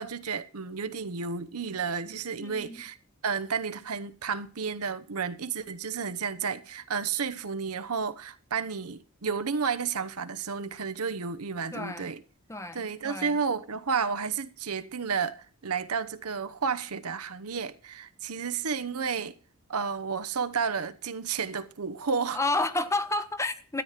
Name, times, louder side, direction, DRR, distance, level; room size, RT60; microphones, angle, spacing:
voice 1, 0.0-3.0 3.2-12.2 12.7-19.3 19.7-22.4, right 6 dB, 75° right, 0.9 m, -32 dB
voice 2, 2.4-2.9 11.7-12.1 12.5-13.4 22.3-23.8, left 2 dB, 15° left, 0.9 m, -31 dB
13.0 x 9.1 x 5.8 m
head